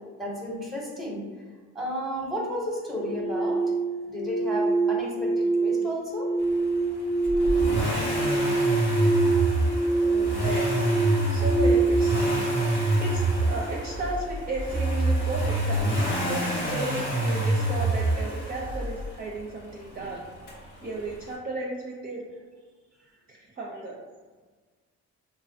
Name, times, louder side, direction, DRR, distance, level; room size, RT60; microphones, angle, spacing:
voice 1, 0.2-1.2 1.7-3.6 4.1-6.3 9.0-9.1, equal, ahead, -2 dB, 0.8 m, -32 dB
sound 1, 2.9-14.0, right 3 dB, 30° left, 0.5 m, -26 dB
Accelerating revving vroom, 7.2-19.2 20.5-20.6, right 1 dB, 90° left, 0.9 m, -26 dB
voice 2, 10.0-10.8 11.3-12.2 13.0-20.3 20.8-22.3 23.3-24.0, right 2 dB, 30° right, -3 dB, 0.5 m, -34 dB
3.2 x 2.1 x 2.6 m, 1.4 s
cardioid pair, 90°, 30 cm